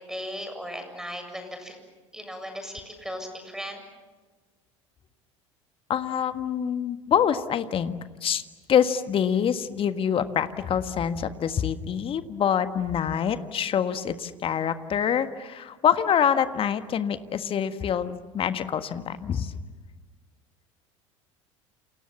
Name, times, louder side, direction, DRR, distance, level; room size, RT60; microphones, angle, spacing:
voice 1, 0.0-1.8 2.1-3.8, equal, 5° right, 7 dB, 7.6 m, -37 dB
voice 2, 5.9-7.9 8.2-8.4 8.7-19.5, left 8 dB, 35° left, 10 dB, 1.6 m, -25 dB
29.0 x 28.5 x 7.3 m, 1.3 s
figure-of-eight pair, 70°, 16 cm